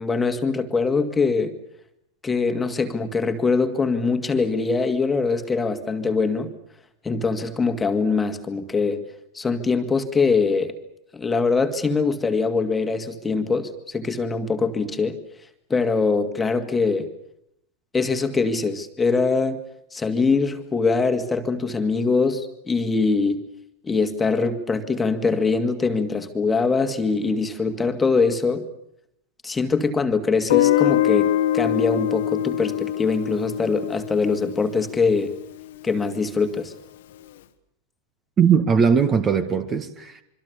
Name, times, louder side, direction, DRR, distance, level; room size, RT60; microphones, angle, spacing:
voice 1, 0.0-1.5 2.2-6.5 7.0-9.0 9.3-10.7 11.1-15.2 15.7-17.1 17.9-19.6 19.9-23.4 23.8-28.7 29.4-35.3 35.8-36.7, left 4 dB, 10° left, 7 dB, 2.2 m, -23 dB
Guitar, 30.5-35.4, left 12 dB, 55° left, 1.6 m, -23 dB
voice 2, 38.4-40.2, right 6 dB, 25° right, 10 dB, 1.9 m, -19 dB
26.5 x 25.0 x 7.0 m, 0.77 s
figure-of-eight pair, 90°, 0 cm